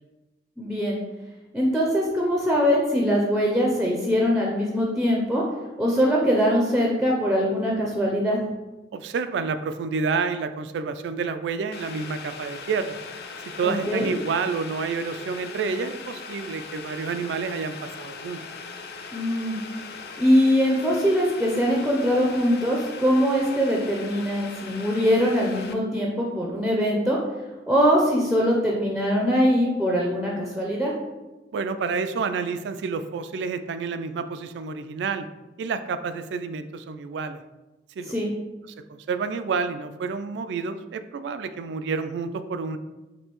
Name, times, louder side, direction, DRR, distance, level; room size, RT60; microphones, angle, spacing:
voice 1, 0.6-1.0 1.5-5.4 5.8-8.4 13.6-14.1 19.1-19.6 20.2-27.2 27.7-30.9 38.1-38.3, equal, ahead, -2 dB, 0.5 m, -22 dB
voice 2, 8.9-13.0 13.6-18.4 31.5-35.3 35.6-37.4 38.0-38.2 38.9-42.8, right 5 dB, 70° right, 10 dB, 0.3 m, -29 dB
Boiling, 11.7-25.7, left 4 dB, 60° left, 0.4 m, -40 dB
5.2 x 2.7 x 3.0 m, 1.1 s
head